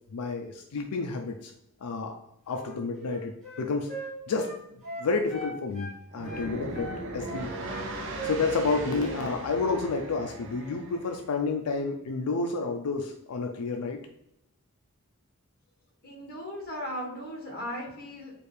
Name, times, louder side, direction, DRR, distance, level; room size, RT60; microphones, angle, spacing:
voice 1, 0.1-1.5 1.8-2.1 2.5-3.9 4.3-4.5 5.0-7.5 8.2-14.0, left 3 dB, 90° left, 3 dB, 0.4 m, -30 dB
Wind instrument woodwind instrument, 2.5-6.0 6.2-7.9 8.2-8.4 8.7-9.3 9.6-9.8, right 1 dB, 5° left, 1.4 m, -39 dB
sound 1, 6.1-11.2, right 1 dB, 55° right, 0.6 m, -38 dB
voice 2, 16.0-18.3, equal, 45° left, -1 dB, 1.3 m, -37 dB
4.4 x 2.4 x 3.3 m, 0.79 s
head